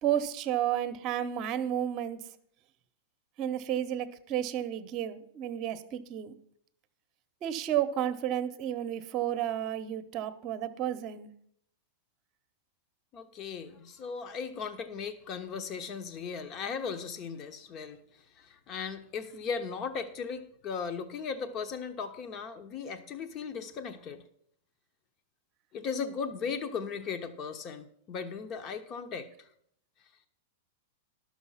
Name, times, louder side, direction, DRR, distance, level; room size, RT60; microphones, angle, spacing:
voice 1, 0.0-2.2 3.4-6.3 7.4-11.3, right 10 dB, 40° right, 11 dB, 0.9 m, -32 dB
voice 2, 13.1-18.0 18.4-24.2 25.7-29.5, left 6 dB, 35° left, 9 dB, 1.0 m, -37 dB
12.0 x 6.3 x 5.6 m, 0.69 s
hypercardioid pair, 120°, 0 cm